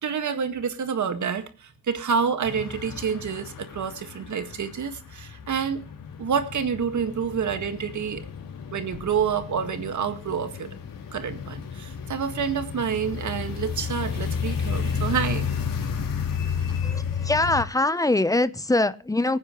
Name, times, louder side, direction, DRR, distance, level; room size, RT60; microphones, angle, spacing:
voice 1, 0.0-5.9 6.2-8.2 8.7-10.7 11.1-15.5, right 6 dB, 60° right, 9 dB, 1.8 m, -28 dB
sound 1, 2.4-17.6, left 6 dB, 90° left, 3.7 m, -32 dB
sound 2, 8.9-11.4, left 4 dB, 35° left, 2.2 m, -49 dB
voice 2, 16.8-19.4, left 2 dB, 10° left, 14 dB, 0.8 m, -23 dB
24.5 x 9.9 x 3.1 m, 0.36 s
wide cardioid pair, 135°, 33 cm